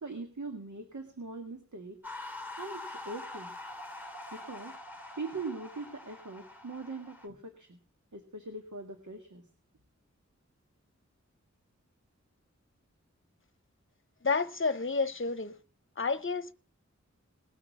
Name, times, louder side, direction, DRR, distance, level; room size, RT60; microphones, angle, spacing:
voice 1, 0.0-2.0 2.6-3.5 4.3-4.8 5.2-7.8 8.1-9.5, right 3 dB, 80° right, 1.9 m, -41 dB
sound 1, 2.0-7.3, left 2 dB, 5° right, 2.9 m, -44 dB
voice 2, 14.2-15.6 16.0-16.5, left 4 dB, 45° left, 0.9 m, -30 dB
19.5 x 6.5 x 7.1 m
wide cardioid pair, 40°, 29 cm